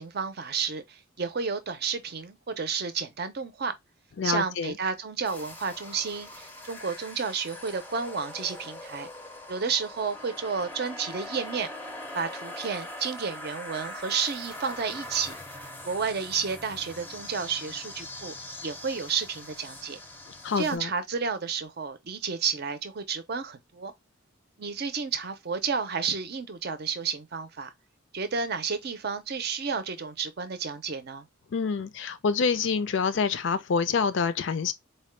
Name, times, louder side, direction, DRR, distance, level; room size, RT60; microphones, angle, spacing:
voice 1, 0.0-3.7 4.2-9.1 9.5-11.7 12.1-15.4 15.8-18.3 18.6-20.0 20.6-23.9 24.6-27.7 28.1-31.3, right 5 dB, 50° right, 0.6 m, -31 dB
voice 2, 4.2-4.7 20.4-20.9 31.5-34.7, left 5 dB, 60° left, 0.4 m, -27 dB
sound 1, 5.2-20.8, left 1 dB, 10° left, 0.5 m, -42 dB
4.1 x 2.2 x 3.1 m
head